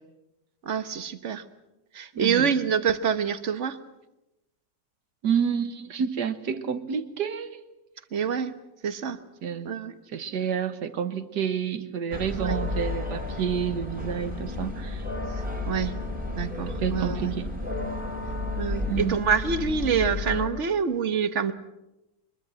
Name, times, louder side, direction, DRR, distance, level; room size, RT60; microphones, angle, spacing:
voice 1, 0.6-1.4 1.9-3.8 8.1-8.5 8.8-9.2 9.6-9.9 12.4-12.6 15.3-15.9 16.4-17.3 18.6-21.5, right 7 dB, 45° right, 12 dB, 1.4 m, -26 dB
voice 2, 2.1-2.5 5.2-7.6 9.4-9.7 10.1-15.0 16.7-17.6 18.9-19.2, right 7 dB, 70° right, 11 dB, 1.8 m, -29 dB
sound 1, 12.1-20.5, left 2 dB, 5° right, 3.2 m, -32 dB
23.5 x 21.5 x 7.6 m, 0.94 s
omnidirectional pair, 1.9 m